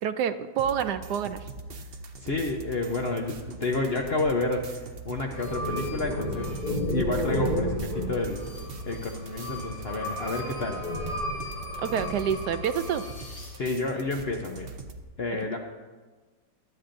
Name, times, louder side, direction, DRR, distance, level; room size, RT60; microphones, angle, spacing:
voice 1, 0.0-1.5 11.8-13.0, right 8 dB, 75° right, 11 dB, 1.1 m, -28 dB
sound 1, 0.6-15.0, right 3 dB, 50° right, 0.7 m, -42 dB
voice 2, 2.2-6.5 6.8-8.4 8.9-10.8 13.6-14.7 15.2-15.6, left 2 dB, 50° left, 2 dB, 0.7 m, -30 dB
sound 2, 5.3-13.5, left 1 dB, 85° left, 3.7 m, -32 dB
23.5 x 8.6 x 2.6 m, 1.3 s
omnidirectional pair, 1.9 m